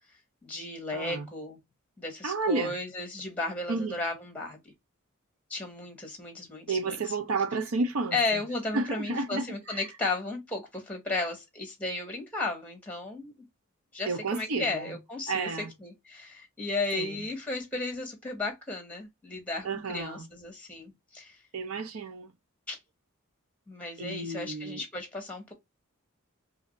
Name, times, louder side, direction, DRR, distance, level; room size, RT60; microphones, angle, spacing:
voice 1, 0.4-1.6 2.0-4.6 5.5-7.1 8.1-13.3 13.9-21.4 22.7-22.8 23.7-25.5, left 2 dB, 5° left, 1.1 m, -34 dB
voice 2, 0.9-1.3 2.2-2.7 3.7-3.9 6.7-8.4 8.7-9.8 14.1-15.0 15.3-15.7 16.9-17.2 19.6-20.3 21.5-22.3 24.0-24.8, right 3 dB, 80° right, 0.6 m, -31 dB
2.7 x 2.5 x 3.9 m
head